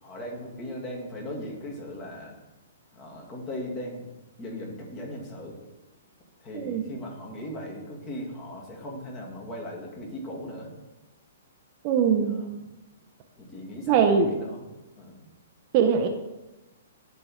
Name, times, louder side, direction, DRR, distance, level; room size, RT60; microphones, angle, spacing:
voice 1, 0.0-2.3 2.9-4.0 4.4-5.6 6.4-10.7 12.3-12.6 13.4-15.3, left 1 dB, 25° left, -1 dB, 2.0 m, -38 dB
voice 2, 11.8-12.4 13.9-14.4 15.7-16.1, right 7 dB, 40° right, 3 dB, 0.7 m, -21 dB
10.5 x 3.5 x 4.2 m, 1.0 s
hypercardioid pair, 130°, 0 cm